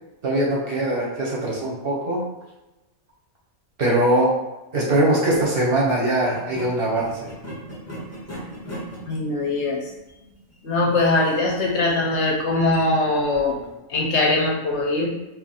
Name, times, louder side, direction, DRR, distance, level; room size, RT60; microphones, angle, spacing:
voice 1, 0.2-2.2 3.8-4.4 4.7-7.1, right 1 dB, 50° right, -4 dB, 0.8 m, -21 dB
sound 1, 5.3-5.5 6.3-13.8, right 1 dB, 15° left, 0.5 m, -39 dB
voice 2, 9.1-9.8 10.6-13.6 13.9-15.1, left 2 dB, 65° left, -2 dB, 0.8 m, -21 dB
2.8 x 2.4 x 3.9 m, 1.0 s
omnidirectional pair, 1.4 m